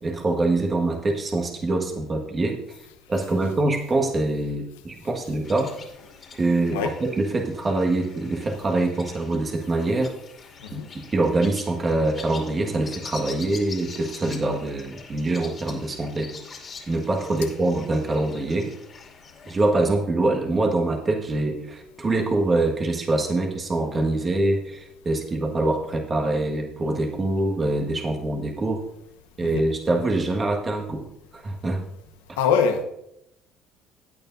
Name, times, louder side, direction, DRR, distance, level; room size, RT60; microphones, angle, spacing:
voice 1, 0.0-2.6 3.1-5.7 6.4-10.1 10.7-16.3 16.9-18.7 19.5-28.8 29.4-31.1 31.3-31.8 32.3-32.4, right 2 dB, 30° right, 1 dB, 1.7 m, -24 dB
sound 1, 5.4-19.7, left 5 dB, 40° left, 2.5 m, -44 dB
voice 2, 32.4-32.8, left 6 dB, 90° left, 6 dB, 1.0 m, -23 dB
16.5 x 9.0 x 2.7 m, 0.81 s
supercardioid pair, 75°, 0 cm